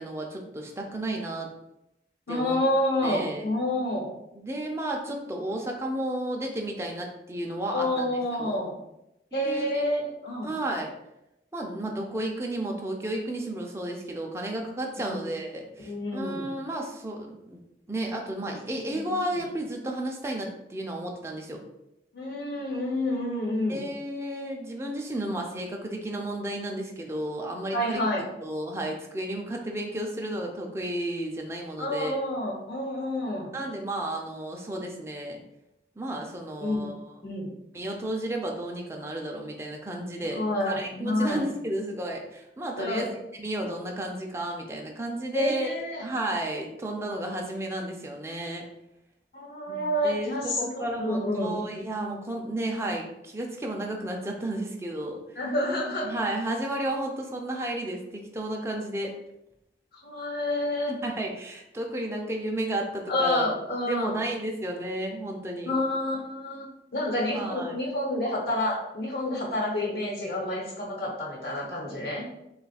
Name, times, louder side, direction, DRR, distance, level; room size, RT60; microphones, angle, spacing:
voice 1, 0.0-1.5 2.3-2.6 3.0-3.4 4.3-8.0 8.4-8.6 9.3-9.8 10.4-10.9 11.5-17.6 17.9-21.6 23.7-28.0 28.4-32.2 33.5-35.4 36.0-37.1 37.7-43.1 43.4-45.7 46.0-48.7 49.7-55.2 56.0-59.1 60.9-63.5 63.9-65.7 67.3-67.7, right 1 dB, 15° right, 0 dB, 0.4 m, -32 dB
voice 2, 2.3-4.1 7.7-8.8 9.3-10.5 14.9-15.3 15.8-16.5 18.9-19.5 22.1-23.8 27.7-28.2 31.8-33.5 36.6-36.8 37.2-37.5 40.3-41.4 42.8-43.1 45.3-46.0 49.3-51.6 55.3-56.1 60.0-61.0 63.1-64.2 65.6-66.7 66.9-72.2, left 1 dB, 65° left, -2 dB, 1.1 m, -29 dB
3.6 x 2.4 x 4.0 m, 0.87 s
head